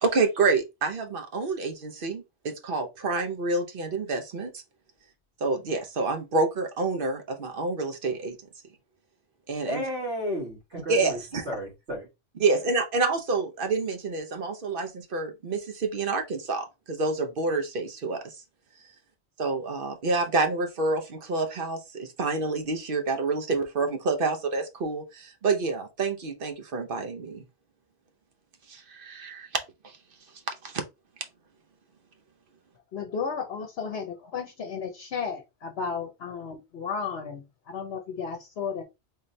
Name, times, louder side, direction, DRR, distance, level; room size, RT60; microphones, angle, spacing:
voice 1, 0.0-4.6 5.4-8.4 9.5-9.8 10.9-11.5 12.4-18.3 19.4-27.4 28.7-29.5 29.8-30.0 30.6-30.8, right 3 dB, 55° right, 0.9 m, -28 dB
voice 2, 9.7-11.2 11.5-12.1, equal, 75° right, 2.1 m, -32 dB
voice 3, 32.9-38.8, left 6 dB, 65° left, 0.9 m, -34 dB
3.8 x 3.1 x 2.6 m
omnidirectional pair, 1.1 m